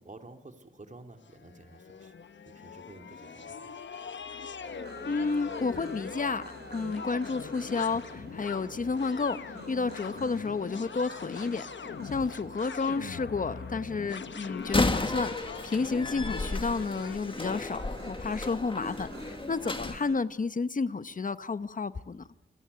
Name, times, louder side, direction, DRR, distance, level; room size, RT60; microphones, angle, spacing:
voice 1, 0.0-2.2 2.4-3.7, right 2 dB, 40° right, 2.6 m, -50 dB
sound 1, 1.3-18.3, left 6 dB, 75° left, 1.1 m, -42 dB
sound 2, 4.6-20.2, right 2 dB, 60° right, 5.4 m, -48 dB
voice 2, 5.0-6.4 6.7-11.7 12.0-22.2, left 4 dB, 45° left, 0.9 m, -31 dB
Slam, 14.6-20.0, left 2 dB, 25° left, 1.7 m, -33 dB
28.0 x 17.5 x 9.7 m
wide cardioid pair, 110°, 19 cm